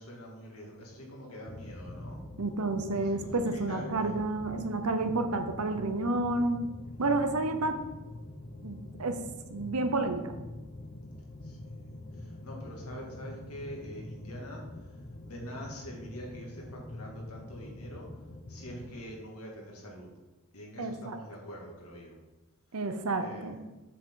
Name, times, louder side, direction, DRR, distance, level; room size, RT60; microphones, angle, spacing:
voice 1, 0.0-2.2 2.9-4.2 11.4-12.0 12.4-14.6 15.2-18.1 18.5-20.1 20.5-22.1 23.2-23.6, equal, 75° left, -1 dB, 2.3 m, -45 dB
sound 1, 1.5-19.0, left 1 dB, 30° left, 0.6 m, -45 dB
voice 2, 2.4-6.6 7.0-7.8 8.6-9.2 9.5-10.3 20.8-21.2 22.7-23.6, right 2 dB, 80° right, 8 dB, 0.8 m, -30 dB
7.4 x 6.8 x 3.9 m, 1.1 s
head